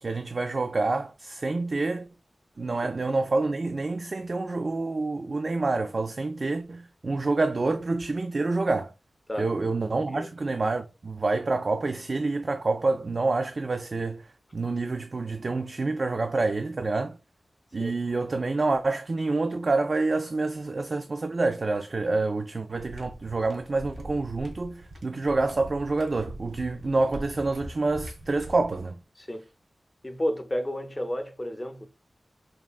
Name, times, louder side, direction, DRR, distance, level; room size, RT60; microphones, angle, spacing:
voice 1, 0.0-2.1 2.6-8.9 9.4-17.2 17.7-29.0, right 3 dB, 45° right, 0.3 m, -27 dB
sound 1, 22.7-28.9, right 1 dB, 85° right, 1.3 m, -43 dB
voice 2, 30.0-31.9, equal, 20° left, 0.5 m, -31 dB
3.5 x 3.4 x 2.3 m
wide cardioid pair, 115°, 0 cm